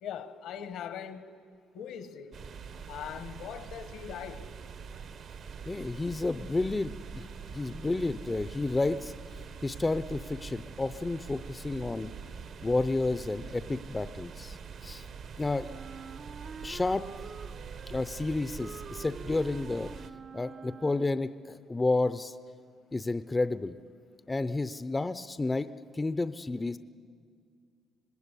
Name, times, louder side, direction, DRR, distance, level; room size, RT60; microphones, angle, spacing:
voice 1, 0.0-1.3 1.7-2.4 2.9-4.5, left 8 dB, 80° left, 1.4 m, -41 dB
sound 1, 2.3-20.1, right 6 dB, 55° right, 1.0 m, -44 dB
voice 2, 5.7-7.3 7.5-9.1 9.6-12.1 12.6-14.6 14.8-15.0 15.4-15.7 16.6-17.1 17.9-19.9 20.3-22.3 22.9-23.8 24.3-25.7 26.0-26.8, left 2 dB, 15° left, 0.5 m, -31 dB
Wind instrument woodwind instrument, 15.6-21.4, right 6 dB, 40° right, 0.5 m, -47 dB
26.0 x 19.5 x 8.4 m
cardioid pair, 120°, 0 cm